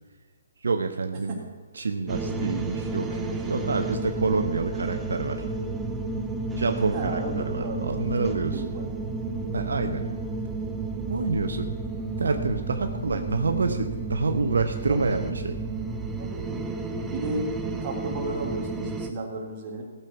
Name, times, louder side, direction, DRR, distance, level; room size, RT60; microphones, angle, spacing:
voice 1, 0.6-1.4 1.8-5.4 6.6-8.6 9.5-10.0 11.1-11.7 12.2-15.6, right 4 dB, 85° right, 6 dB, 0.9 m, -27 dB
sound 1, 2.1-19.1, right 3 dB, 10° right, 0.8 m, -32 dB
voice 2, 6.9-7.8 8.5-8.9 13.1-13.2 14.9-15.0 16.2-16.5 16.9-17.5 17.8-19.8, right 2 dB, 30° right, -2 dB, 3.3 m, -34 dB
15.5 x 7.1 x 5.9 m, 1.4 s
hypercardioid pair, 155°, 0 cm